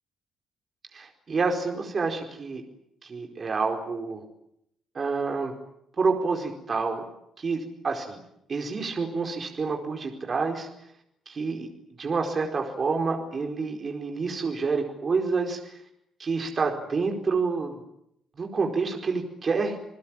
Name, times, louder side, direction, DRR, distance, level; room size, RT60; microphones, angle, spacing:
voice 1, 0.9-2.6 3.0-4.2 4.9-5.5 6.0-7.0 7.4-8.2 8.5-10.7 11.3-11.7 12.0-15.8 16.2-17.8 18.4-19.8, right 4 dB, 40° right, 2 dB, 4.7 m, -28 dB
29.0 x 20.0 x 9.1 m, 0.77 s
cardioid pair, 90°, 0 cm